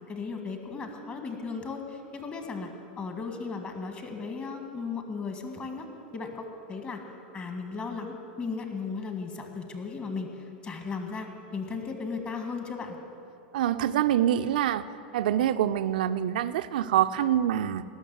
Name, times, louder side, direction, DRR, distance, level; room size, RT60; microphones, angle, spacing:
voice 1, 0.1-5.9 6.1-7.0 7.3-11.3 11.5-13.0, left 4 dB, 25° left, 5 dB, 1.9 m, -36 dB
voice 2, 13.5-14.8 15.1-17.8, right 11 dB, 60° right, 11 dB, 0.5 m, -25 dB
18.5 x 6.6 x 7.9 m, 2.6 s
figure-of-eight pair, 90°, 5 cm